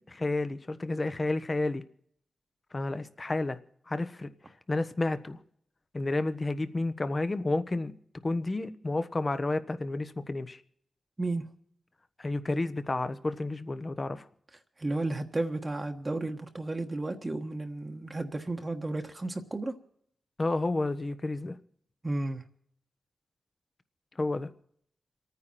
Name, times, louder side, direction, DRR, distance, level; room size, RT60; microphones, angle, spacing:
voice 1, 0.1-1.8 2.7-3.6 3.9-4.3 4.7-5.4 5.9-7.9 8.2-10.6 12.2-14.3 20.4-21.6 24.2-24.5, left 2 dB, 35° left, 1.2 m, -31 dB
voice 2, 14.8-19.8 22.0-22.4, right 2 dB, 30° right, 1.4 m, -33 dB
27.5 x 9.6 x 4.4 m
cardioid pair, 70°, 0 cm